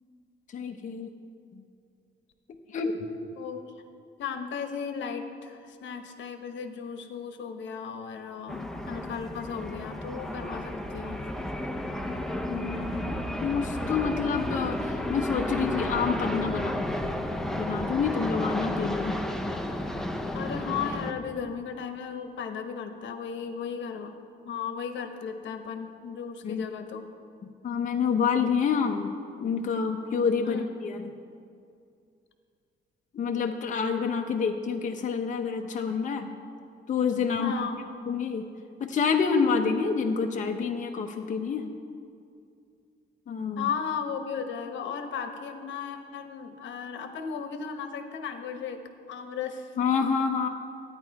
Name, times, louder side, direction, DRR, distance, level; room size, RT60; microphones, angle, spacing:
voice 1, 0.5-1.1 1.5-1.6 2.7-2.9 12.5-16.9 17.6-19.2 26.4-26.7 27.6-29.1 29.4-31.1 33.1-36.3 36.9-37.5 38.1-38.5 38.8-41.7 43.3-43.7 49.8-50.5, left 6 dB, 40° left, 3 dB, 0.7 m, -28 dB
voice 2, 4.2-11.2 20.3-24.2 24.4-27.1 30.4-30.7 37.3-37.8 43.6-48.8 49.1-49.7, left 6 dB, 80° left, 7 dB, 1.0 m, -35 dB
sound 1, 8.5-21.1, left 1 dB, ahead, 0.6 m, -32 dB
14.0 x 9.7 x 4.7 m, 2.4 s
cardioid pair, 150°, 19 cm